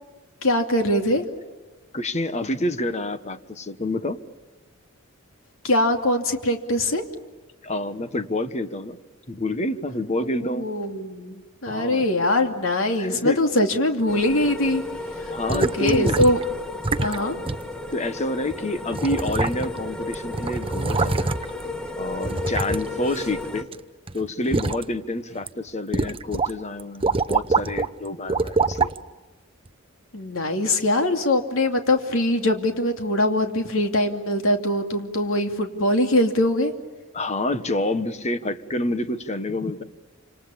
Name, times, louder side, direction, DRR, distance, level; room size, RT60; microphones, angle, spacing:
voice 1, 0.4-1.2 5.6-7.0 10.2-14.8 15.2-16.4 17.0-17.4 30.1-36.7, left 1 dB, 75° left, 4 dB, 2.7 m, -22 dB
voice 2, 1.9-4.2 7.6-9.0 9.3-10.7 11.6-12.1 13.0-13.4 15.3-16.2 17.1-17.4 17.9-21.3 22.0-23.7 24.1-28.9 37.1-39.8, left 1 dB, 35° left, 10 dB, 1.4 m, -28 dB
sound 1, 14.1-23.6, left 2 dB, 5° left, 1.7 m, -34 dB
sound 2, 15.5-16.4 16.8-17.2 17.5-17.6 18.5-18.6 18.9-19.9 20.1-21.6 22.2-23.8 24.1-24.8 25.3-25.5 25.9-26.5 26.8-27.9 28.3-29.0 29.7-29.8, right 3 dB, 25° right, 0.8 m, -24 dB
28.5 x 27.0 x 7.2 m, 1.2 s
head